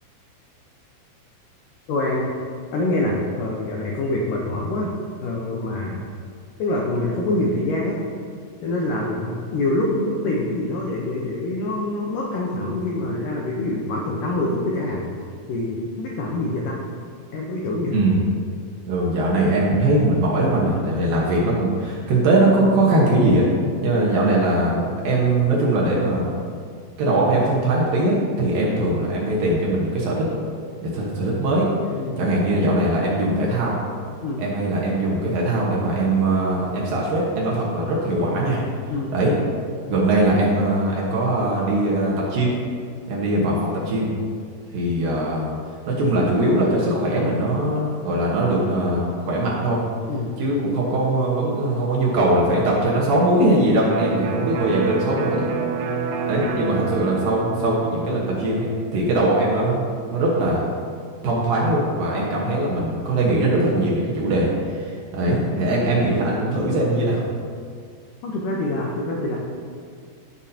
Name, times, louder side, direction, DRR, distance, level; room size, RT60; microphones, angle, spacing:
voice 1, 1.9-2.3 2.7-4.9 5.2-6.0 6.6-8.0 8.6-15.0 15.5-16.8 17.3-18.0 32.0-32.2 34.2-34.4 38.9-39.1 50.1-50.3 68.2-69.4, left 2 dB, 80° left, -2 dB, 1.9 m, -25 dB
voice 2, 17.9-18.2 18.9-23.5 23.8-26.3 27.0-30.3 30.8-31.7 32.2-33.8 34.4-38.6 39.1-39.3 39.9-42.5 43.1-44.1 44.7-45.4 45.9-49.8 50.4-55.5 56.3-58.7 58.9-59.8 60.1-60.7 61.2-67.2, right 1 dB, 65° right, -4 dB, 2.7 m, -21 dB
Electric guitar, 53.9-61.6, right 5 dB, 80° right, 2.1 m, -30 dB
15.5 x 7.1 x 2.8 m, 2.1 s
omnidirectional pair, 5.1 m